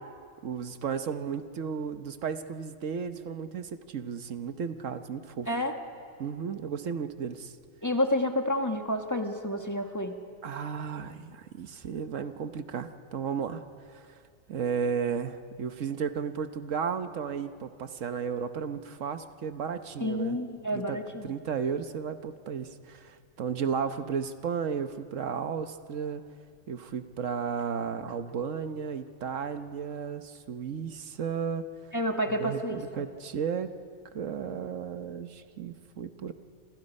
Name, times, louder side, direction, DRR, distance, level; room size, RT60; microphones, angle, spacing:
voice 1, 0.4-5.5 6.2-7.5 10.4-13.6 13.9-14.1 14.5-20.4 20.7-26.2 26.7-31.7 32.3-33.7 34.1-36.3, right 6 dB, 80° right, 9 dB, 1.4 m, -34 dB
voice 2, 7.8-10.1 20.0-21.3 31.9-33.0, left 1 dB, 15° left, 4 dB, 1.4 m, -29 dB
28.5 x 26.5 x 5.4 m, 2.2 s
omnidirectional pair, 1.3 m